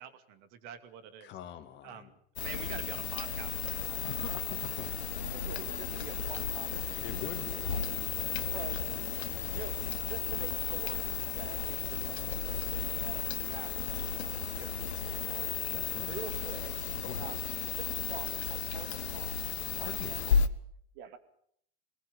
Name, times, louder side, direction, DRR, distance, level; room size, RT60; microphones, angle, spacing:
voice 1, 0.0-1.4 1.8-4.9 5.3-7.0 7.6-7.9 8.5-8.8 9.4-11.0 11.4-14.9 15.3-15.6 16.0-16.8 17.2-19.4 19.7-20.3 20.9-21.2, right 8 dB, 50° right, 9 dB, 2.6 m, -47 dB
voice 2, 1.2-2.1 4.1-4.9 7.0-7.7 15.7-16.2 16.9-17.3 19.7-20.3, left 11 dB, 35° left, 9 dB, 2.2 m, -44 dB
sound 1, 2.4-20.5, left 7 dB, 85° left, 1.4 m, -34 dB
20.5 x 19.5 x 7.0 m, 0.68 s
hypercardioid pair, 125°, 32 cm